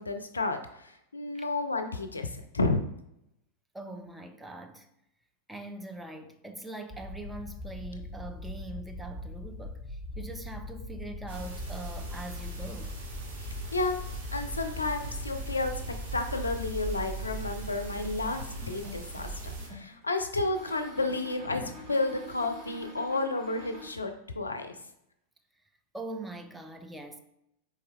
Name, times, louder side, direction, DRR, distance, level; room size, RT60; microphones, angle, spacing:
voice 1, 0.0-2.8 13.7-14.0 14.3-15.8 16.1-19.3 19.7-24.7, left 2 dB, 80° left, 0.4 m, -31 dB
voice 2, 3.7-4.9 5.5-12.9 25.9-27.2, right 2 dB, 5° right, 0.4 m, -42 dB
sound 1, 6.9-16.9, left 1 dB, 20° left, 0.7 m, -41 dB
sound 2, 11.3-19.7, right 2 dB, 55° right, 0.9 m, -39 dB
sound 3, 18.0-20.0 20.5-23.9, left 1 dB, 25° right, 1.4 m, -46 dB
4.3 x 3.5 x 2.2 m
figure-of-eight pair, 90°, 0 cm